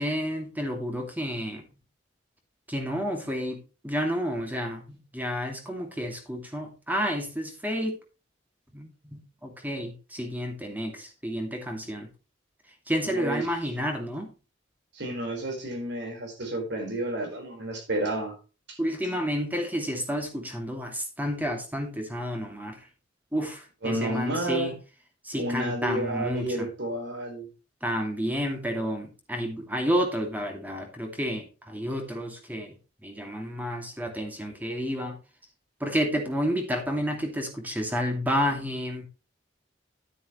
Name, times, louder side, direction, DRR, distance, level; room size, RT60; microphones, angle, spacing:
voice 1, 0.0-1.7 2.7-8.0 8.7-12.1 12.9-14.3 18.8-22.8 23.3-24.7 25.2-26.7 27.8-32.7 33.0-35.2 35.8-39.1, equal, 10° right, 2.4 m, -30 dB
voice 2, 13.0-13.5 14.9-18.4 18.7-18.8 23.8-24.7 25.3-27.5, right 1 dB, 65° right, 4.5 m, -31 dB
11.0 x 9.5 x 3.1 m
head